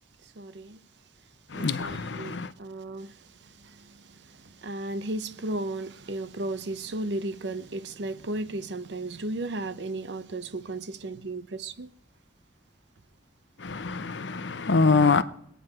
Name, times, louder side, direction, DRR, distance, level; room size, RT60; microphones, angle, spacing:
voice 1, 0.4-0.8 1.5-3.1 4.6-11.9, right 2 dB, 70° right, 0.8 m, -34 dB
voice 2, 1.5-2.5 13.6-15.2, left 4 dB, 75° left, 0.8 m, -24 dB
23.0 x 9.3 x 4.5 m
head